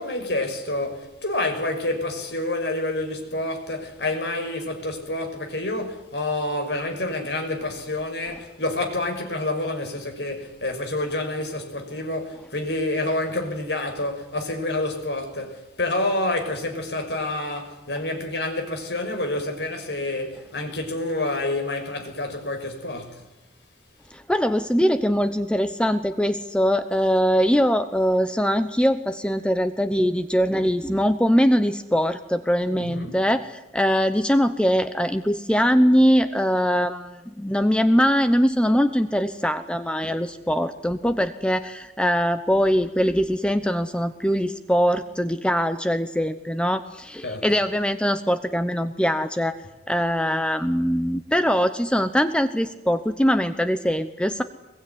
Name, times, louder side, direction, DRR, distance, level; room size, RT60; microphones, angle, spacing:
voice 1, 0.0-23.2 32.7-33.2 47.2-47.5, left 2 dB, 75° left, 6.1 m, -28 dB
voice 2, 24.1-49.6 49.9-54.4, equal, 5° left, 0.9 m, -22 dB
23.5 x 22.5 x 9.8 m
head